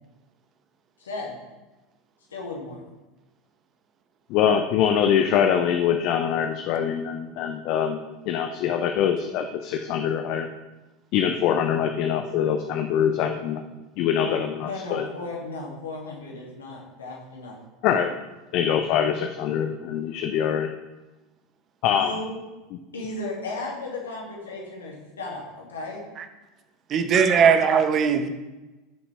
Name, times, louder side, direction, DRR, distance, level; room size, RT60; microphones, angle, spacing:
voice 1, 1.0-1.4 2.3-2.8 14.2-17.6 21.9-22.4 22.9-26.0 27.2-27.5, left 2 dB, 75° left, -2 dB, 2.5 m, -35 dB
voice 2, 4.3-10.5 11.1-13.6 14.0-15.0 17.8-18.1 18.5-20.7 21.8-22.1, left 8 dB, 50° left, 6 dB, 0.7 m, -24 dB
voice 3, 26.9-28.3, right 6 dB, 40° right, 8 dB, 1.0 m, -19 dB
13.5 x 7.0 x 3.4 m, 1.1 s
figure-of-eight pair, 80°, 0 cm